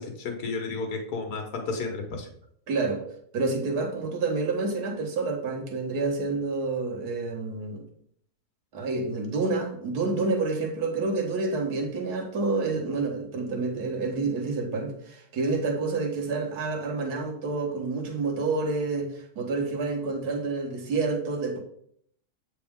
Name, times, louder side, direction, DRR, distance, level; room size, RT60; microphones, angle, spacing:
voice 1, 0.0-2.3, left 3 dB, 80° left, 3 dB, 1.5 m, -32 dB
voice 2, 2.7-3.0 3.3-7.8 8.7-21.6, right 3 dB, 85° right, 3 dB, 1.7 m, -28 dB
7.9 x 4.2 x 3.5 m, 0.65 s
omnidirectional pair, 1.6 m